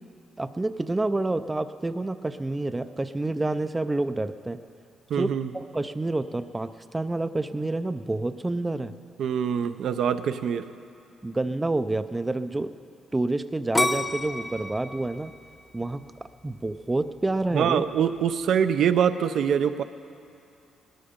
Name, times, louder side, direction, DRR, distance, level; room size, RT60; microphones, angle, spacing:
voice 1, 0.4-4.6 5.2-8.9 11.2-12.7 13.1-15.3 15.7-16.1 16.4-17.8, right 2 dB, 15° right, 11 dB, 0.5 m, -28 dB
voice 2, 5.1-5.5 9.2-10.7 17.5-19.8, right 8 dB, 70° right, 9 dB, 0.5 m, -24 dB
sound 1, 13.7-16.7 17.2-17.7, left 1 dB, 15° left, 0.9 m, -29 dB
19.0 x 13.0 x 5.1 m, 2.6 s
cardioid pair, 90°, 0 cm